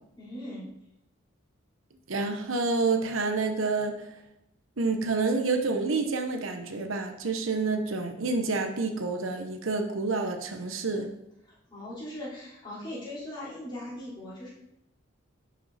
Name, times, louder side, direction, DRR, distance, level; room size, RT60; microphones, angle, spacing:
voice 1, 0.2-0.6 11.7-14.5, left 1 dB, 25° left, -9 dB, 3.8 m, -39 dB
voice 2, 2.1-4.0 4.8-11.1, right 3 dB, 80° right, 5 dB, 1.0 m, -28 dB
10.5 x 5.4 x 4.2 m, 0.82 s
head